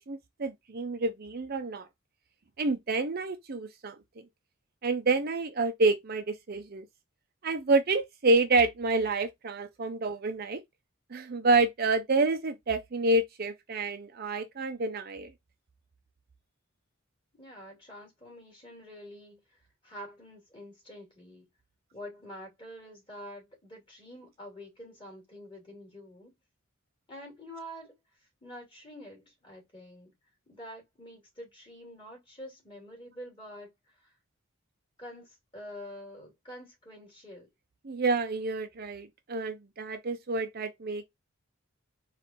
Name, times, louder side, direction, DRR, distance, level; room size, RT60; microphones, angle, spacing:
voice 1, 0.0-1.9 2.6-3.9 4.8-6.8 7.4-10.6 11.1-15.3 37.8-41.0, right 3 dB, 45° right, 0.6 m, -28 dB
voice 2, 17.3-21.5 21.9-26.3 27.1-27.9 28.4-30.1 30.5-34.2 35.0-37.5, equal, 25° left, 2.7 m, -47 dB
4.5 x 2.5 x 4.2 m
head